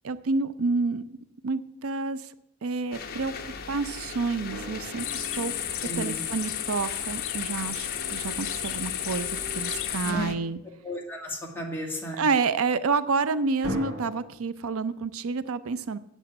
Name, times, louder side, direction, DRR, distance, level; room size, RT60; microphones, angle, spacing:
voice 1, 0.0-1.2 1.4-2.3 2.6-10.6 12.2-16.0, right 4 dB, 85° right, 14 dB, 0.6 m, -29 dB
sound 1, 2.9-10.4, left 5 dB, 45° left, 1.0 m, -38 dB
sound 2, 4.5-6.6 13.6-14.3, equal, 65° right, 3.2 m, -38 dB
sound 3, 5.0-10.1, left 12 dB, 85° left, 0.8 m, -33 dB
voice 2, 5.8-6.2 10.0-10.3 10.8-12.2, equal, 10° left, -1 dB, 2.2 m, -34 dB
8.2 x 8.0 x 8.5 m, 0.80 s
head